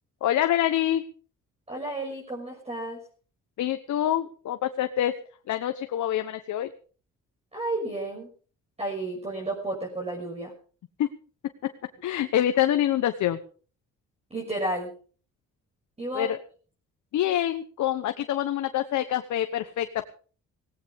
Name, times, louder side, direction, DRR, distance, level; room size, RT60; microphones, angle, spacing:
voice 1, 0.2-1.0 3.6-5.1 5.5-6.7 11.0-11.1 11.6-11.7 12.0-13.4 16.1-16.4 17.1-20.0, left 12 dB, 70° left, 8 dB, 1.1 m, -26 dB
voice 2, 1.7-3.0 7.5-8.3 8.8-10.5 14.3-14.9 16.0-16.3, right 1 dB, 20° right, -2 dB, 6.4 m, -32 dB
18.0 x 17.5 x 3.6 m, 0.41 s
cardioid pair, 90°, 30 cm